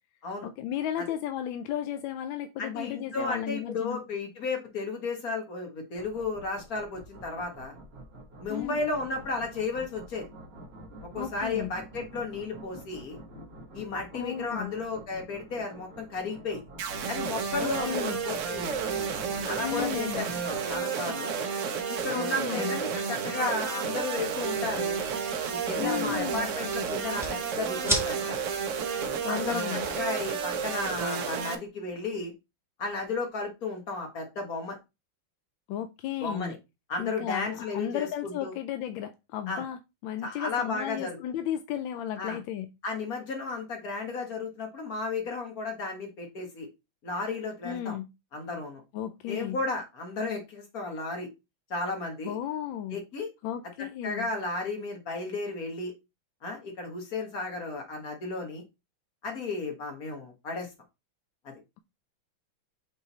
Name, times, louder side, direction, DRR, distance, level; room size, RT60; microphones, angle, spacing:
voice 1, 0.4-4.0 8.5-8.8 11.2-11.7 14.1-14.7 17.6-18.2 19.6-20.3 22.2-22.8 25.8-26.5 29.2-29.9 35.7-36.5 37.0-42.7 47.6-48.1 48.9-49.6 52.2-53.0 53.4-54.3, left 10 dB, 75° left, 1.2 m, -34 dB
voice 2, 2.6-7.7 8.4-10.3 11.1-13.2 13.7-16.6 17.1-18.8 19.5-21.3 21.9-25.0 25.5-28.4 29.3-32.3 32.8-34.8 36.2-36.6 36.9-38.5 39.5-39.6 40.2-41.2 42.2-42.4 42.8-46.7 47.0-48.0 48.3-48.8 49.3-51.3 51.7-52.4 52.9-53.3 54.0-55.9 56.4-58.6 59.2-60.7, left 3 dB, 45° left, 1.9 m, -34 dB
sound 1, 6.0-20.8, right 1 dB, 30° right, 1.5 m, -47 dB
sound 2, 16.8-31.6, right 6 dB, 70° right, 0.7 m, -31 dB
sound 3, 24.3-31.0, equal, ahead, 1.2 m, -39 dB
6.0 x 3.8 x 4.1 m
omnidirectional pair, 2.3 m